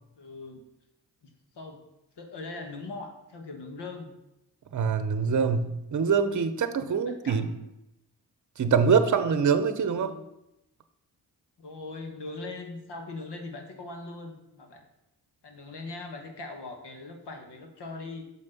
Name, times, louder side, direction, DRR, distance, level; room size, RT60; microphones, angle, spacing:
voice 1, 0.2-0.6 1.2-1.8 2.2-4.1 7.0-7.6 9.9-10.2 11.6-14.8 15.4-18.2, left 3 dB, 75° left, 4 dB, 1.5 m, -41 dB
voice 2, 4.7-7.5 8.6-10.1, right 6 dB, 45° right, 11 dB, 0.8 m, -24 dB
6.5 x 5.4 x 5.3 m, 0.88 s
cardioid pair, 45°, 41 cm